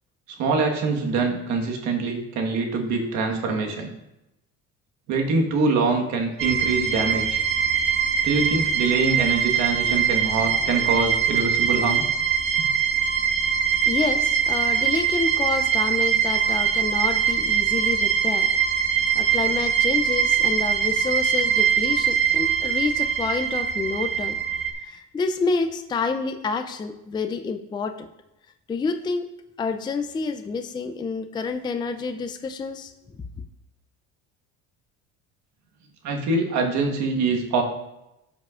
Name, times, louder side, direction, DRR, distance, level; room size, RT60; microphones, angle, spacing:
voice 1, 0.4-3.9 5.1-7.4 8.2-12.1 36.0-37.6, right 4 dB, 65° right, 2 dB, 1.5 m, -24 dB
sound 1, 6.4-24.7, right 7 dB, 45° right, 1.4 m, -22 dB
voice 2, 13.9-24.4 24.8-28.1 28.7-29.3 29.6-32.9, left 4 dB, 15° left, 7 dB, 0.4 m, -28 dB
11.5 x 5.5 x 2.5 m, 0.91 s
cardioid pair, 125°, 30 cm